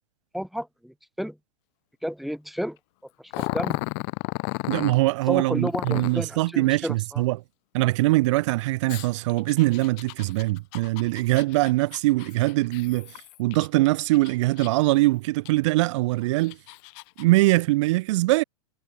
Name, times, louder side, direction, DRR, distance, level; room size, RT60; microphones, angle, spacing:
voice 1, 0.3-1.4 2.0-2.8 3.2-3.8 5.3-7.2, equal, ahead, 2.3 m, -32 dB
Growling, 3.3-5.0 5.7-6.3 8.9-13.7 14.1-14.9 15.5-15.6 16.2-17.2, left 37 dB, 45° left, 2.0 m, -34 dB
voice 2, 4.7-7.4 7.7-13.1 13.4-16.6 17.2-18.4, right 20 dB, 50° right, 0.7 m, -22 dB
hypercardioid pair, 100°, 19 cm